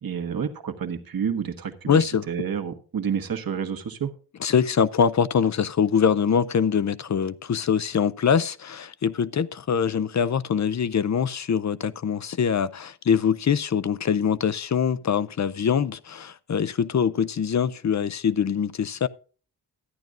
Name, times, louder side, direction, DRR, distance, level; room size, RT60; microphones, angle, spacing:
voice 1, 0.0-4.1, right 7 dB, 60° right, 1.3 m, -29 dB
voice 2, 1.9-2.2 4.4-19.1, left 7 dB, 45° left, 0.5 m, -23 dB
14.0 x 10.5 x 2.5 m
wide cardioid pair, 180°, 40 cm